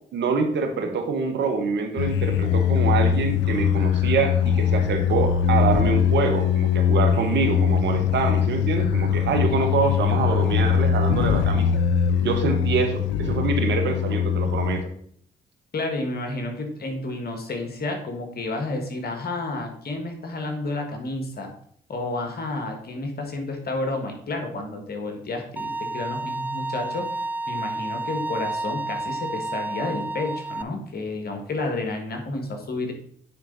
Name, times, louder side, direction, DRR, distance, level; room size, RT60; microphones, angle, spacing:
voice 1, 0.1-11.7 12.2-14.9, right 5 dB, 75° right, 6 dB, 1.2 m, -25 dB
sound 1, 2.0-14.8, left 8 dB, 85° left, 0.6 m, -22 dB
voice 2, 15.7-21.5 21.9-27.0 27.5-32.9, left 2 dB, 55° left, 4 dB, 1.8 m, -30 dB
Bowed string instrument, 25.6-30.6, right 2 dB, 10° right, 0.3 m, -30 dB
9.2 x 4.0 x 4.0 m, 0.62 s
supercardioid pair, 45°, 19 cm